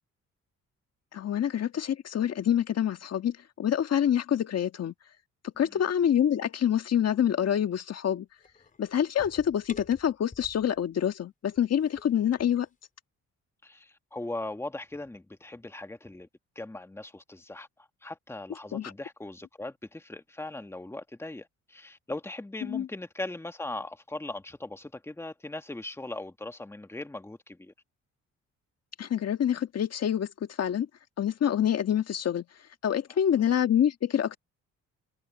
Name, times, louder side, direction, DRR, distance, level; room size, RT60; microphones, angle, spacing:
voice 1, 1.1-4.9 5.6-8.3 8.8-12.7 18.7-18.9 22.6-22.9 29.0-30.3 30.6-30.9 31.2-32.4 32.8-34.4, left 9 dB, 55° left, 1.6 m, -26 dB
sound 1, 8.4-10.9 11.5-12.7, left 4 dB, 25° left, 4.4 m, -50 dB
voice 2, 13.6-16.3 16.5-17.7 18.0-27.7, left 2 dB, 10° left, 1.5 m, -39 dB
cardioid pair, 90°, 30 cm